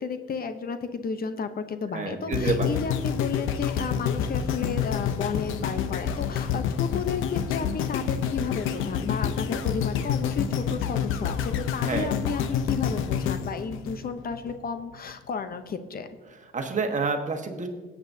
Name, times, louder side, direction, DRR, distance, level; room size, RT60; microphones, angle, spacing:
voice 1, 0.0-16.1, left 5 dB, 50° left, 9 dB, 0.8 m, -32 dB
voice 2, 1.9-2.7 11.9-12.2 16.5-17.7, right 4 dB, 40° right, 5 dB, 1.4 m, -28 dB
sound 1, 2.3-14.5 15.1-15.2, left 8 dB, 90° left, 0.7 m, -28 dB
17.0 x 8.5 x 2.8 m, 1.3 s
cardioid pair, 90°, 20 cm